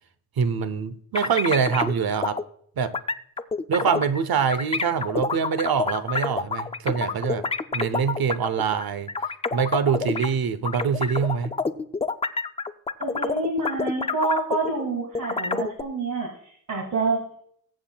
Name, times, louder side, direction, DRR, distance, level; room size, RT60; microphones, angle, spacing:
voice 1, 0.4-2.4 2.8-2.9 3.7-7.4 7.7-9.1 9.5-11.5, right 6 dB, 75° right, 12 dB, 0.8 m, -24 dB
sound 1, 1.1-1.9 2.2-2.4 2.9-4.2 4.5-10.3 10.6-14.8 15.1-15.8, left 4 dB, 20° left, 0.3 m, -27 dB
voice 2, 13.0-17.4, right 3 dB, 60° right, -1 dB, 1.9 m, -27 dB
22.0 x 7.4 x 2.3 m, 0.65 s
wide cardioid pair, 135°, 36 cm